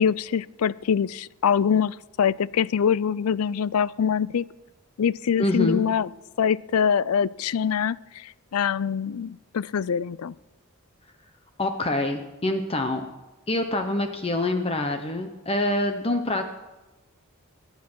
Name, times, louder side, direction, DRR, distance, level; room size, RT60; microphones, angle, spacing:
voice 1, 0.0-4.4 5.0-6.1 6.4-10.3, left 7 dB, 80° left, 21 dB, 0.4 m, -24 dB
voice 2, 5.4-5.8 11.6-13.0 13.5-16.5, left 1 dB, 25° left, 6 dB, 0.9 m, -25 dB
23.0 x 9.7 x 6.2 m, 1.1 s
head